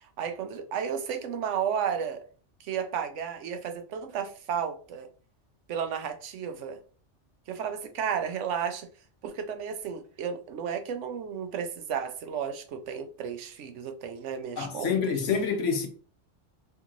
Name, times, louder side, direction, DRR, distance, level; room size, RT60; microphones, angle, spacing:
voice 1, 0.0-2.2 2.6-5.1 5.7-6.8 7.5-8.9 9.2-15.0, right 7 dB, 85° right, 1.0 m, -33 dB
voice 2, 14.6-15.9, left 6 dB, 85° left, 1.2 m, -27 dB
3.7 x 3.5 x 3.0 m
omnidirectional pair, 1.2 m